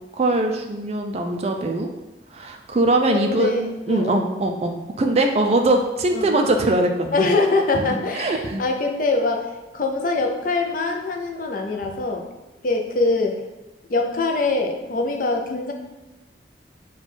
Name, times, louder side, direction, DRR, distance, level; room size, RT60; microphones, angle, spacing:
voice 1, 0.2-1.9 2.3-7.3 7.9-8.6, right 2 dB, 35° right, 4 dB, 0.3 m, -22 dB
voice 2, 3.1-4.2 6.1-6.3 7.1-9.5 9.7-12.2 12.6-13.4 13.9-15.7, left 3 dB, 45° left, 3 dB, 0.5 m, -23 dB
4.4 x 2.3 x 4.1 m, 1.0 s
head